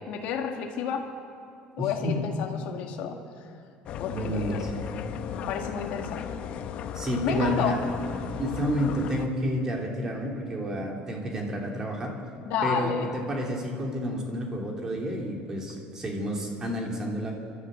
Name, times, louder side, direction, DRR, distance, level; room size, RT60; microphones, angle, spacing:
voice 1, 0.1-1.0 1.8-3.5 4.0-4.7 5.2-6.3 7.2-7.7 12.4-13.1, left 7 dB, 55° left, 1 dB, 1.8 m, -31 dB
voice 2, 1.8-2.2 4.1-4.8 6.9-7.8 8.4-12.2 12.6-17.3, equal, 20° right, 0 dB, 2.9 m, -30 dB
sound 1, 3.9-9.3, left 8 dB, 40° left, 1.0 m, -36 dB
29.5 x 12.5 x 7.9 m, 2.5 s
cardioid pair, 170°, 3 cm